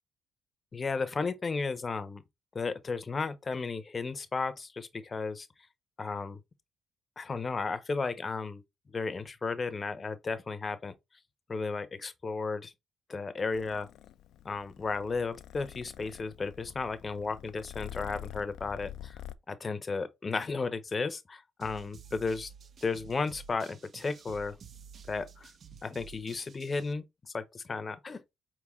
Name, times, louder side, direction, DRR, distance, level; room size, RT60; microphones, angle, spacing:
voice 1, 0.7-2.2 2.5-5.5 6.0-6.4 7.2-8.6 8.9-10.9 11.5-12.7 13.1-13.9 14.4-19.2 19.5-22.5 22.8-24.6 25.1-25.5 25.8-28.2, left 4 dB, 30° left, 0.6 m, -34 dB
Purr, 13.5-19.3, left 12 dB, 80° left, 0.3 m, -46 dB
sound 1, 21.6-26.9, right 6 dB, 50° right, 0.5 m, -51 dB
4.6 x 3.6 x 3.0 m
cardioid pair, 95°, 0 cm